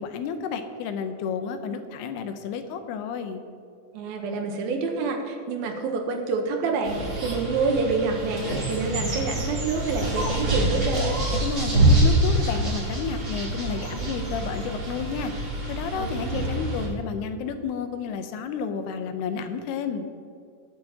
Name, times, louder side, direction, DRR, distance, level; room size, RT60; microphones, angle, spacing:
voice 1, 0.0-3.4 11.4-15.3 15.6-20.1, left 6 dB, 85° left, 8 dB, 2.8 m, -31 dB
voice 2, 3.9-11.2 16.0-16.5, right 4 dB, 75° right, 3 dB, 2.6 m, -27 dB
sound 1, 6.8-16.9, right 1 dB, 25° right, 3.0 m, -26 dB
21.0 x 8.6 x 2.9 m, 2.4 s
omnidirectional pair, 4.5 m